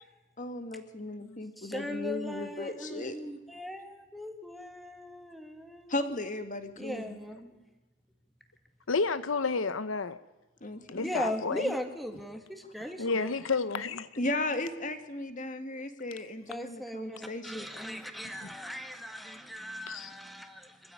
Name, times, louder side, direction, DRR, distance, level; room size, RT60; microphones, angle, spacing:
voice 1, 0.4-3.2 5.9-7.1 10.6-11.1 12.8-12.9 14.2-17.7, left 2 dB, 40° left, 8 dB, 2.0 m, -36 dB
voice 2, 1.6-5.9 6.8-7.5 11.0-13.3 16.5-20.9, equal, ahead, 5 dB, 2.0 m, -38 dB
voice 3, 8.9-10.2 10.9-11.7 13.0-14.1 19.9-20.1, left 4 dB, 75° left, 13 dB, 0.8 m, -31 dB
24.5 x 15.5 x 9.3 m, 1.1 s
head